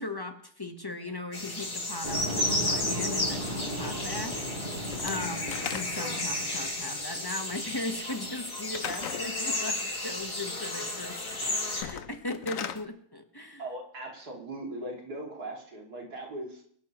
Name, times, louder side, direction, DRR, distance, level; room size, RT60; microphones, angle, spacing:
voice 1, 0.0-13.6, left 2 dB, 15° left, 5 dB, 1.0 m, -38 dB
sound 1, 1.3-11.8, left 1 dB, 85° left, 4.6 m, -33 dB
sound 2, 2.0-7.0, equal, 40° right, 7.6 m, -36 dB
Slam / Wood, 4.9-6.2 8.7-9.3 11.7-12.8, left 9 dB, 65° left, 1.0 m, -37 dB
voice 2, 13.6-16.6, right 1 dB, 80° right, 0 dB, 3.0 m, -39 dB
25.0 x 11.5 x 3.0 m, 0.62 s
omnidirectional pair, 1.7 m